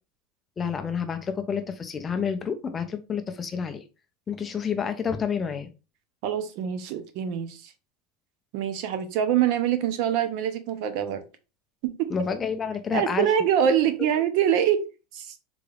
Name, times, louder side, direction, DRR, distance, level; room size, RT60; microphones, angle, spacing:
voice 1, 0.6-3.8 4.3-5.7 12.1-13.3, left 6 dB, 20° left, 0.4 m, -29 dB
voice 2, 6.2-7.7 8.5-11.2 11.8-12.1 12.9-14.8 15.1-15.3, right 9 dB, 55° right, 0.6 m, -24 dB
3.8 x 3.3 x 2.3 m
supercardioid pair, 160°, 0 cm